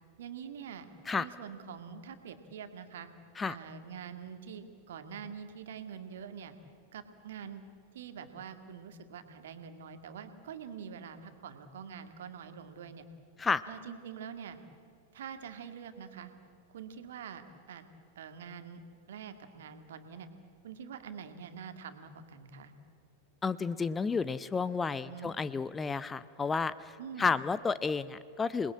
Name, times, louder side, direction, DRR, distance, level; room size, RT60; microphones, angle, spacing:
voice 1, 0.2-0.9 1.2-3.1 3.5-6.5 6.9-7.6 7.9-13.1 13.7-14.6 15.1-16.3 16.7-17.4 17.7-17.8 18.2-18.8 19.1-20.3 20.6-22.7 25.1-25.3 27.0-27.3, right 7 dB, 60° right, 9 dB, 1.9 m, -45 dB
voice 2, 23.4-26.9 27.2-28.7, left 5 dB, 15° left, 16 dB, 0.6 m, -31 dB
27.0 x 20.5 x 8.7 m, 2.4 s
figure-of-eight pair, 90°, 0 cm